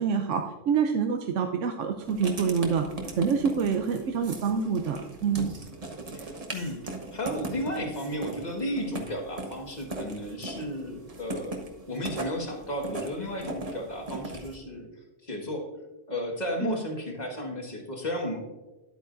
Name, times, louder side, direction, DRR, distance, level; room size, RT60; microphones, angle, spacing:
voice 1, 0.0-2.9 3.2-5.5 16.6-16.8, right 6 dB, 75° right, 5 dB, 1.0 m, -26 dB
Writing, 2.0-14.6, right 2 dB, 30° right, 1.0 m, -39 dB
voice 2, 6.1-11.6 11.9-14.9 15.2-15.7 16.1-18.4, equal, 35° left, 2 dB, 1.6 m, -33 dB
11.0 x 8.4 x 2.6 m, 1.1 s
omnidirectional pair, 1.3 m